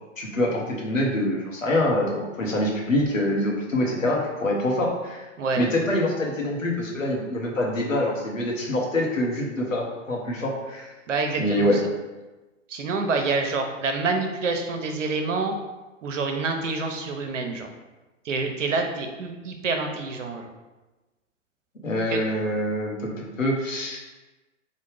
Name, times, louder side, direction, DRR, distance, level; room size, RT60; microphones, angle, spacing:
voice 1, 0.2-5.3 5.6-10.9 11.4-11.8 21.8-24.0, left 1 dB, 85° left, -2 dB, 0.8 m, -25 dB
voice 2, 11.1-11.7 12.7-15.6 16.0-17.7 18.3-20.5 22.1-22.2, right 4 dB, 70° right, 4 dB, 0.6 m, -27 dB
3.2 x 2.1 x 3.3 m, 1.1 s
figure-of-eight pair, 100°, 38 cm